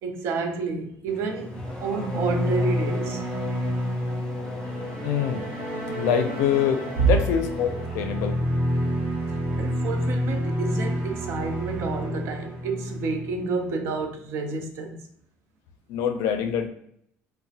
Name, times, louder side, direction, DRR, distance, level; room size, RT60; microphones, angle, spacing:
voice 1, 0.0-3.2 7.0-7.1 9.6-15.0, right 4 dB, 60° right, 0.5 m, -29 dB
Race car auto racing / Accelerating revving vroom, 1.1-8.3, left 3 dB, 15° left, 0.3 m, -37 dB
sound 1, 1.3-13.8, equal, 85° right, 0.9 m, -29 dB
voice 2, 5.0-5.5 5.9-8.4 15.9-16.7, left 8 dB, 85° left, 0.4 m, -25 dB
2.9 x 2.1 x 2.7 m
cardioid pair, 155°, 5 cm